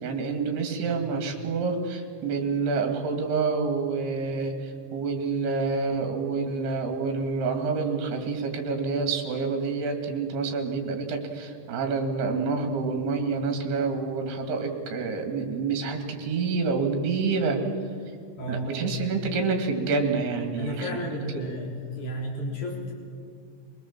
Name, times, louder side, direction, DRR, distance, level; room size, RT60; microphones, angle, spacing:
voice 1, 0.0-17.6 18.5-21.0 21.3-21.5, right 4 dB, 65° right, 4 dB, 4.1 m, -28 dB
voice 2, 18.4-18.7 20.6-21.7 22.0-22.9, equal, 35° left, -1 dB, 4.2 m, -32 dB
24.5 x 20.0 x 7.4 m, 2.2 s
omnidirectional pair, 5.1 m